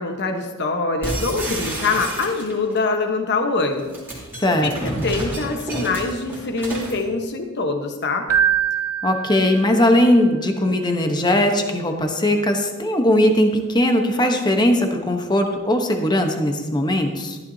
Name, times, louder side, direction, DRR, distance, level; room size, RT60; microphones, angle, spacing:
voice 1, 0.0-4.0 4.4-8.3, left 3 dB, 50° left, 4 dB, 1.1 m, -24 dB
sound 1, 1.0-2.7 3.7-7.0, right 1 dB, 10° right, 2.6 m, -30 dB
voice 2, 4.4-5.1 9.0-17.4, left 1 dB, 20° left, 4 dB, 1.0 m, -19 dB
Keyboard (musical), 8.3-10.1, right 9 dB, 70° right, 0.5 m, -23 dB
14.0 x 11.5 x 2.8 m, 1.3 s
head